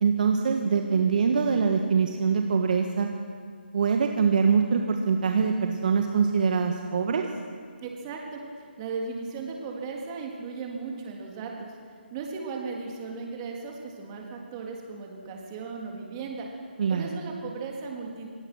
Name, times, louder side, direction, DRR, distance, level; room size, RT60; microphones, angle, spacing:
voice 1, 0.0-3.1 3.7-7.2 16.8-17.1, right 5 dB, 50° right, 4 dB, 1.5 m, -23 dB
voice 2, 7.8-8.4 8.8-11.7 12.1-16.5 16.9-18.3, right 4 dB, 25° right, 0 dB, 3.5 m, -36 dB
25.0 x 18.5 x 6.3 m, 2.1 s
figure-of-eight pair, 155°, 6 cm